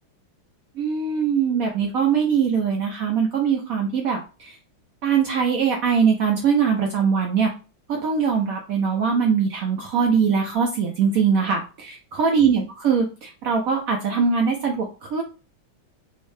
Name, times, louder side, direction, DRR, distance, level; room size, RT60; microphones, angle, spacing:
voice 1, 0.7-4.6 5.0-7.5 7.9-15.2, right 6 dB, 80° right, 2 dB, 0.7 m, -22 dB
4.5 x 2.1 x 3.2 m, 0.34 s
omnidirectional pair, 2.1 m